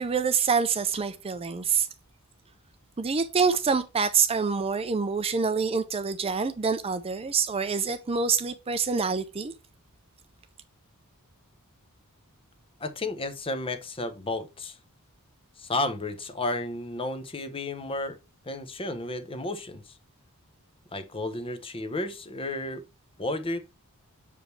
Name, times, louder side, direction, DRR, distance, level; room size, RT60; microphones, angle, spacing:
voice 1, 0.0-1.9 3.0-9.5, right 5 dB, 25° right, 0.5 m, -26 dB
voice 2, 12.8-14.8 15.6-18.2 18.5-19.8 20.9-22.8 23.2-23.6, left 2 dB, 25° left, 0.8 m, -32 dB
6.8 x 5.0 x 3.2 m
head